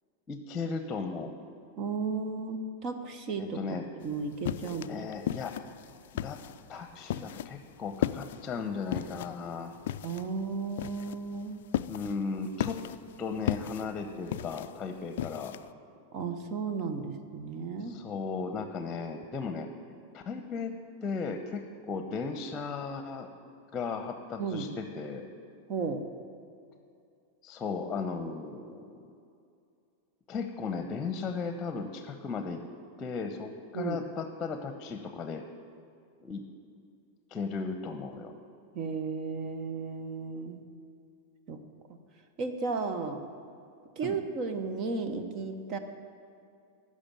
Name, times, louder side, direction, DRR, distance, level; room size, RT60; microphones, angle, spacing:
voice 1, 0.3-1.3 3.4-3.8 4.6-5.5 6.2-6.4 6.7-9.7 11.9-12.8 13.2-15.5 17.8-19.7 20.1-20.7 21.0-23.3 23.7-25.3 27.4-29.0 30.3-32.6 33.0-35.4 36.2-36.4 37.3-38.3 44.0-44.2, left 4 dB, 20° left, 7 dB, 1.0 m, -36 dB
voice 2, 1.8-3.6 4.0-5.0 10.0-11.6 16.1-18.0 24.4-24.7 25.7-26.0 33.7-34.0 38.7-40.6 41.5-41.6 42.4-43.2 44.0-45.8, right 4 dB, 35° right, 8 dB, 1.1 m, -34 dB
sound 1, 4.0-15.7, left 12 dB, 55° left, 0.4 m, -36 dB
15.0 x 6.5 x 9.0 m, 2.5 s
figure-of-eight pair, 90°, 0 cm